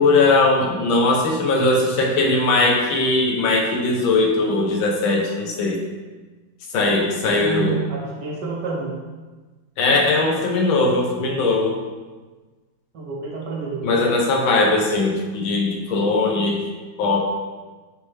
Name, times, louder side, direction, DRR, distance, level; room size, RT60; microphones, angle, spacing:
voice 1, 0.0-5.8 6.7-7.8 9.8-11.8 13.8-16.6 17.0-17.2, left 3 dB, 80° left, 0 dB, 1.7 m, -19 dB
voice 2, 7.2-9.0 12.9-14.0, right 4 dB, 65° right, -2 dB, 1.5 m, -29 dB
8.4 x 3.4 x 3.3 m, 1.3 s
omnidirectional pair, 2.2 m